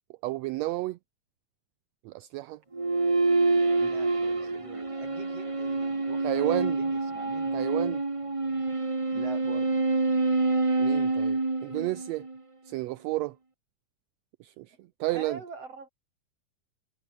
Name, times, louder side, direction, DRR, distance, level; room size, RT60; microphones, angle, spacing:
voice 1, 0.2-1.0 2.0-2.6 6.2-6.8 7.5-8.0 10.8-12.2 12.7-13.3 14.4-14.7 15.0-15.4, right 18 dB, 80° right, 1.6 m, -31 dB
sound 1, 2.7-12.4, right 3 dB, 35° right, 0.5 m, -27 dB
voice 2, 3.8-7.6 9.1-9.8 14.6-15.9, right 4 dB, 55° right, 6.6 m, -45 dB
omnidirectional pair, 3.4 m